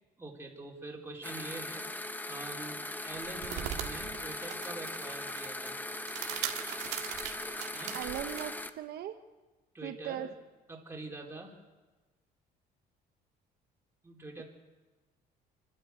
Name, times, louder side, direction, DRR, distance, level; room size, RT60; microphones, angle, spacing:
voice 1, 0.2-1.9 2.2-5.8 7.7-8.0 9.7-10.3 10.7-11.6 14.0-14.4, right 2 dB, 15° right, -1 dB, 4.1 m, -45 dB
sound 1, 1.2-8.7, left 2 dB, 10° left, 1.0 m, -39 dB
sound 2, 3.1-8.5, right 11 dB, 85° right, 1.9 m, -40 dB
voice 2, 7.9-9.2 9.8-10.3, right 12 dB, 70° right, 8 dB, 0.9 m, -38 dB
28.0 x 12.5 x 8.3 m, 1.3 s
cardioid pair, 110°, 17 cm